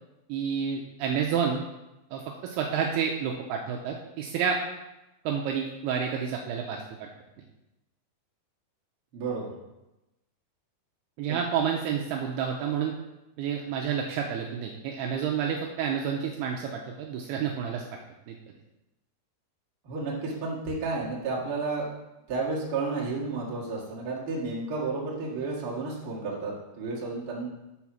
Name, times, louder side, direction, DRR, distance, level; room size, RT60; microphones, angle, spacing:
voice 1, 0.3-1.6 2.1-4.6 5.3-7.1 11.2-12.9 13.4-17.8 18.3-18.4, right 7 dB, 85° right, 1 dB, 2.4 m, -29 dB
voice 2, 9.1-9.5 11.3-11.4 19.8-21.9 22.3-27.5, right 3 dB, 50° right, -5 dB, 1.6 m, -32 dB
8.4 x 4.1 x 6.0 m, 0.97 s
omnidirectional pair, 5.2 m